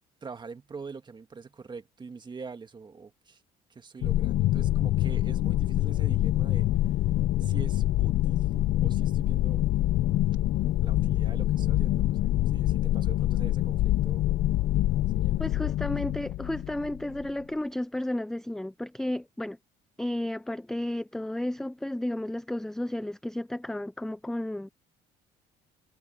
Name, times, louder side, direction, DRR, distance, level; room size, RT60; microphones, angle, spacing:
voice 1, 0.2-3.4 3.7-7.0 7.4-8.5 8.8-9.6 10.8-14.3 15.1-16.0, right 5 dB, 25° right, 1.9 m, -44 dB
sound 1, 4.0-17.3, left 14 dB, 70° left, 0.7 m, -26 dB
voice 2, 15.4-19.6 20.0-24.7, left 1 dB, 5° left, 0.4 m, -32 dB
cardioid pair, 110°, 17 cm